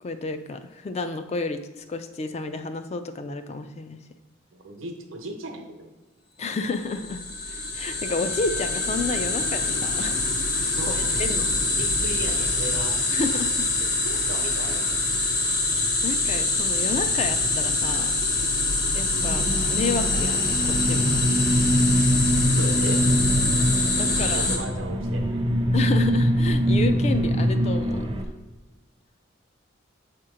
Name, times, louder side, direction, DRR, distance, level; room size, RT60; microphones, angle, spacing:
voice 1, 0.0-4.0 6.4-10.3 10.6-10.8 11.2-11.6 13.1-13.7 15.4-15.6 16.0-18.1 18.9-21.1 23.6-24.5 25.7-28.0, left 3 dB, 35° left, 8 dB, 0.3 m, -31 dB
voice 2, 4.5-5.9 10.7-11.3 11.8-13.0 14.0-14.9 22.6-23.1 24.1-25.5, right 1 dB, 85° right, 4 dB, 0.8 m, -36 dB
sound 1, 6.8-24.6, left 3 dB, 55° left, 1.1 m, -25 dB
sound 2, 19.0-28.2, equal, 25° right, 0.5 m, -23 dB
6.9 x 2.9 x 4.9 m, 1.1 s
head